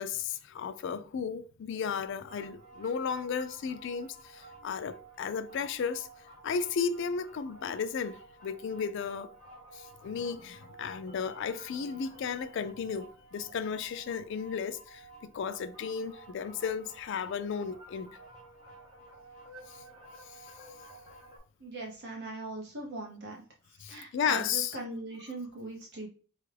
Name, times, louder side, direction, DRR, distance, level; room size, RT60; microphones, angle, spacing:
voice 1, 0.0-6.1 6.4-9.3 9.7-18.1 19.7-19.8 20.3-20.5 23.8-24.8, left 6 dB, 60° left, 0.3 m, -34 dB
sound 1, 2.2-21.4, right 2 dB, 20° right, 1.1 m, -53 dB
voice 2, 21.6-23.4 23.8-26.1, right 2 dB, 55° right, 0.7 m, -40 dB
4.4 x 2.3 x 3.2 m
head